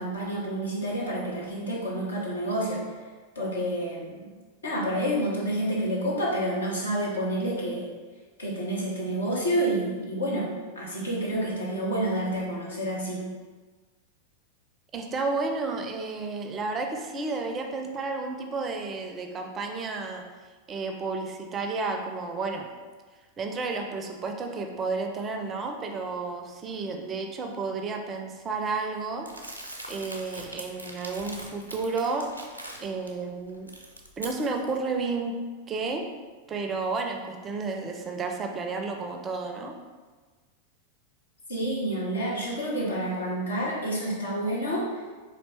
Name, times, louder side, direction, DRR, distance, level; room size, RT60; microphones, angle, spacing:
voice 1, 0.0-2.8 3.3-4.3 4.6-7.9 8.4-10.5 10.7-13.3 41.5-44.9, right 1 dB, 75° left, -4 dB, 1.0 m, -29 dB
voice 2, 14.9-20.3 20.7-22.7 23.4-29.3 29.9-32.3 32.8-33.7 34.2-35.4 35.7-36.1 36.5-39.7, right 3 dB, 25° right, 3 dB, 0.4 m, -31 dB
Crumpling crinkling, 29.3-33.1 33.5-34.8, right 1 dB, 85° right, 0.5 m, -42 dB
4.2 x 2.7 x 3.2 m, 1.4 s
figure-of-eight pair, 90°, 0 cm